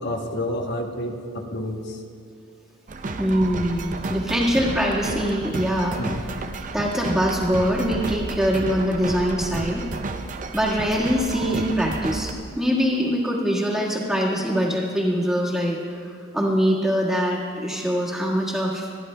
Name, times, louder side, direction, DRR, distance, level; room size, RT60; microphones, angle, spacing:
voice 1, 0.0-2.0 6.0-6.2, left 1 dB, 55° left, 4 dB, 1.0 m, -29 dB
sound 1, 2.9-12.3, right 3 dB, 40° right, 0.5 m, -32 dB
voice 2, 3.2-6.0 6.7-9.8 10.5-19.0, equal, 5° right, -4 dB, 1.6 m, -23 dB
26.0 x 10.0 x 2.2 m, 2.4 s
head